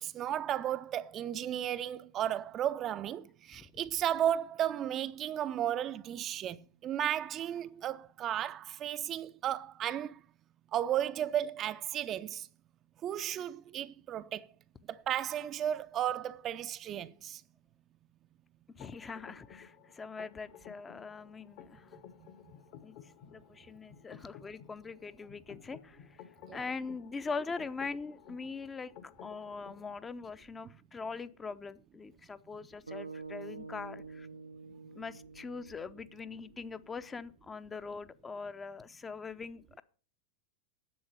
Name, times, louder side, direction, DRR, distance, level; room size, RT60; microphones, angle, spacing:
voice 1, 0.0-10.2 10.7-12.5 13.0-14.5 14.9-17.4 22.2-22.3 26.5-26.6, right 11 dB, 30° right, 0.5 m, -34 dB
sound 1, 18.8-29.9, left 9 dB, 45° left, 1.1 m, -55 dB
voice 2, 18.8-21.9 22.8-23.0 23.3-26.2 26.5-28.9 29.2-34.3 34.9-39.8, left 4 dB, 15° left, 0.6 m, -42 dB
sound 2, 32.9-37.1, right 4 dB, 80° right, 0.5 m, -47 dB
10.0 x 7.8 x 7.0 m
figure-of-eight pair, 90°, 0 cm